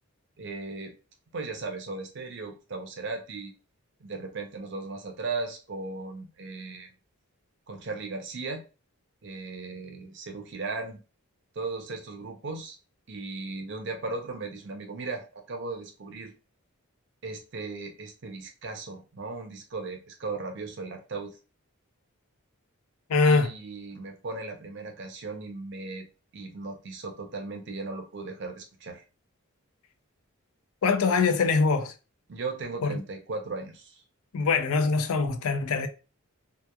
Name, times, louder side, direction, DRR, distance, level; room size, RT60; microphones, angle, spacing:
voice 1, 0.4-0.9 1.3-3.5 4.0-6.9 7.7-8.7 9.2-11.0 11.6-12.8 13.1-16.3 17.2-21.4 23.2-26.1 26.3-29.0 32.3-34.0, right 3 dB, 55° right, 0.5 m, -37 dB
voice 2, 23.1-23.5 30.8-31.9 32.8-33.0 34.3-35.9, left 4 dB, 75° left, 0.4 m, -23 dB
2.9 x 2.2 x 2.2 m
head